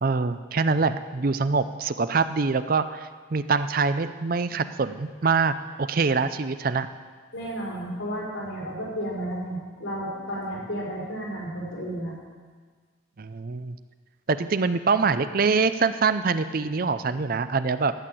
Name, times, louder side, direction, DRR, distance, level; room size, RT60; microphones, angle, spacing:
voice 1, 0.0-6.9 13.2-13.8 14.3-17.9, right 4 dB, 45° right, 12 dB, 0.5 m, -24 dB
voice 2, 7.3-12.1, equal, 85° left, -5 dB, 5.0 m, -32 dB
12.5 x 8.6 x 7.6 m, 1.5 s
head